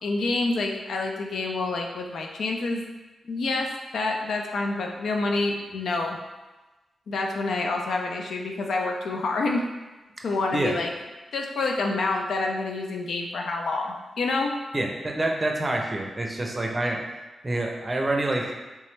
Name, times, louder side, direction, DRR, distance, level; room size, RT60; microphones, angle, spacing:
voice 1, 0.0-2.9 3.3-6.2 7.1-9.7 10.2-10.9 11.3-14.6, left 3 dB, 80° left, 2 dB, 0.4 m, -27 dB
voice 2, 14.7-17.0 17.4-18.5, right 1 dB, 25° right, 1 dB, 0.5 m, -27 dB
3.4 x 3.0 x 3.1 m, 1.1 s
wide cardioid pair, 95°, 0 cm